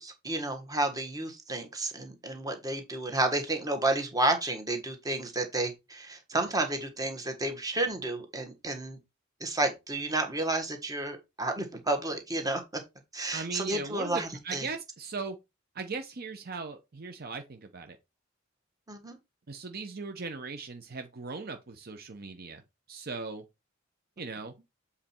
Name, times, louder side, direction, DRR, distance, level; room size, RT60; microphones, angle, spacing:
voice 1, 0.0-9.0 9.4-12.6 13.1-14.7 18.9-19.2, right 2 dB, 20° right, 1.6 m, -31 dB
voice 2, 13.3-15.4 15.7-18.0 19.5-22.6 22.9-23.4 24.2-24.5, right 4 dB, 50° right, 0.8 m, -38 dB
7.6 x 4.2 x 4.4 m
head